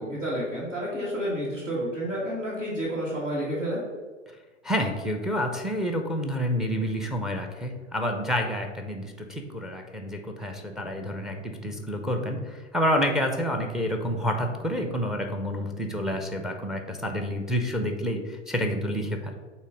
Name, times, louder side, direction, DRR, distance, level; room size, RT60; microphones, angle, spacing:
voice 1, 0.0-3.8, equal, 80° right, -7 dB, 2.0 m, -30 dB
voice 2, 4.6-19.3, equal, ahead, 5 dB, 0.5 m, -29 dB
8.2 x 3.0 x 5.0 m, 1.3 s
figure-of-eight pair, 95°, 36 cm